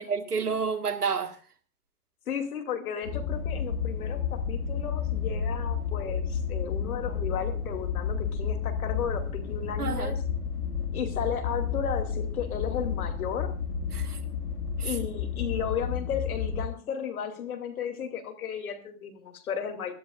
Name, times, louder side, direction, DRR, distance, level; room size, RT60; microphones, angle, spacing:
voice 1, 0.0-1.4 9.8-10.2 13.9-14.2 14.8-14.9, right 5 dB, 85° right, 1.7 m, -30 dB
voice 2, 2.3-10.2 10.9-13.6 14.8-19.9, left 7 dB, 70° left, 2.7 m, -34 dB
sound 1, 3.0-16.7, left 6 dB, 85° left, 2.0 m, -31 dB
24.0 x 12.5 x 2.4 m
figure-of-eight pair, 100°, 45 cm